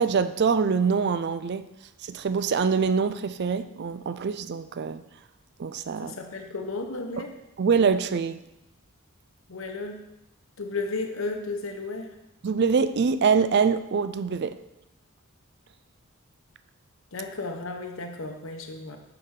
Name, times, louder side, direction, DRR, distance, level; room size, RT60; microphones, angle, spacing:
voice 1, 0.0-1.7 2.0-5.0 5.6-6.2 7.6-8.4 12.4-14.6, right 5 dB, 50° right, 12 dB, 0.4 m, -24 dB
voice 2, 6.0-7.3 9.5-10.1 10.6-12.2 17.1-19.0, left 3 dB, 65° left, 4 dB, 0.9 m, -34 dB
8.7 x 5.8 x 3.7 m, 0.91 s
head